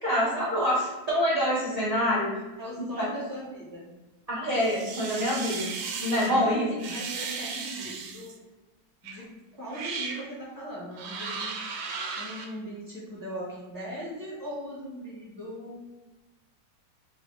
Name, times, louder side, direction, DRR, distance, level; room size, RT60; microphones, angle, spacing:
voice 1, 0.0-2.3 3.0-3.1 4.3-5.7 5.9-6.7, equal, 35° right, -7 dB, 0.6 m, -26 dB
voice 2, 2.6-3.9 6.2-8.4 9.0-9.3 9.5-11.5 12.2-15.8, equal, 15° right, -7 dB, 1.1 m, -39 dB
sound 1, 4.5-6.3 6.8-8.4 9.0-9.2 9.7-10.2 10.9-12.5, right 5 dB, 75° right, 1.2 m, -36 dB
3.3 x 2.5 x 3.7 m, 1.2 s
omnidirectional pair, 2.0 m